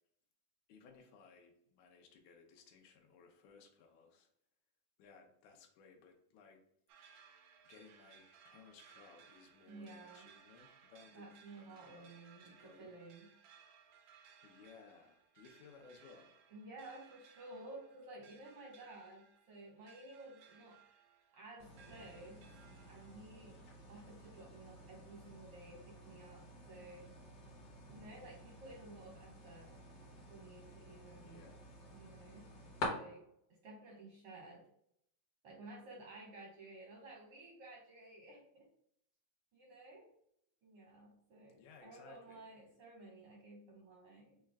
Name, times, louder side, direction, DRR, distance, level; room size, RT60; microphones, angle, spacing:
voice 1, 0.7-4.3 5.0-6.6 7.6-11.3 11.5-12.9 14.4-16.4 31.2-31.7 41.5-42.5, left 5 dB, 75° left, 3 dB, 2.2 m, -61 dB
sound 1, 6.9-23.2, right 7 dB, 90° right, 1.5 m, -64 dB
voice 2, 9.7-10.3 11.1-13.3 16.5-20.8 21.3-22.5 22.9-23.6 23.9-27.1 27.8-29.7 30.3-31.4 31.9-32.5 32.9-33.2 33.6-34.6 35.4-38.7 39.5-40.1 40.6-44.4, right 2 dB, 75° right, -2 dB, 1.2 m, -54 dB
sound 2, 21.6-32.9, left 2 dB, 55° left, 1.1 m, -50 dB
6.5 x 2.2 x 3.5 m, 0.71 s
omnidirectional pair, 3.7 m